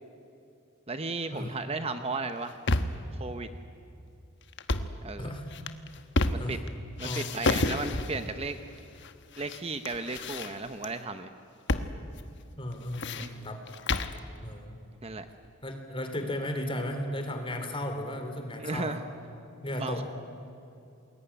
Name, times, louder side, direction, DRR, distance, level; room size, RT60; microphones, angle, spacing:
voice 1, 0.9-2.6 3.2-3.5 5.0-5.3 6.3-6.6 7.0-8.6 9.4-11.3 13.2-13.4 15.0-15.3 18.6-19.0 19.8-20.0, right 3 dB, 30° right, 9 dB, 0.9 m, -35 dB
sound 1, 2.3-3.1 4.5-5.0 5.5-6.7 7.0-8.3 9.0-9.6 9.8-10.9 11.7-11.9 12.2-12.3 12.7-14.2, left 2 dB, 55° left, 1.2 m, -30 dB
voice 2, 12.6-13.6 14.4-14.8 15.6-19.0 19.6-20.0, left 1 dB, 25° left, 6 dB, 3.4 m, -35 dB
28.0 x 21.5 x 10.0 m, 2.7 s
head